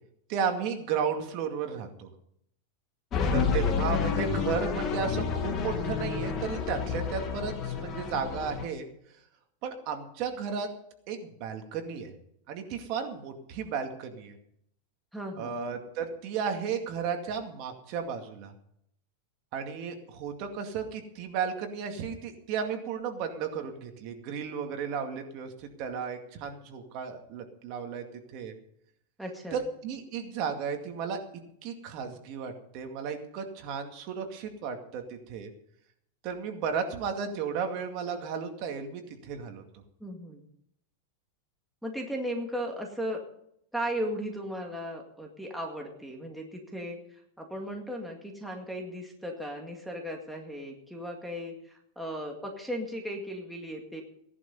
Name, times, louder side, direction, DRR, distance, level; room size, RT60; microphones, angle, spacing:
voice 1, 0.3-2.1 3.3-8.9 9.6-10.7 11.1-12.1 12.5-14.4 15.3-18.5 19.5-28.0 28.3-28.5 29.5-31.2 31.6-35.5 36.2-39.6, right 6 dB, 40° right, 5 dB, 2.2 m, -34 dB
sound 1, 3.1-8.6, left 6 dB, 25° left, 2.1 m, -30 dB
voice 2, 3.1-3.4 15.1-15.5 29.2-29.6 40.0-40.4 41.8-43.2 43.7-54.0, equal, ahead, 0 dB, 2.0 m, -36 dB
17.0 x 11.0 x 5.4 m, 0.70 s
supercardioid pair, 165°, 0 cm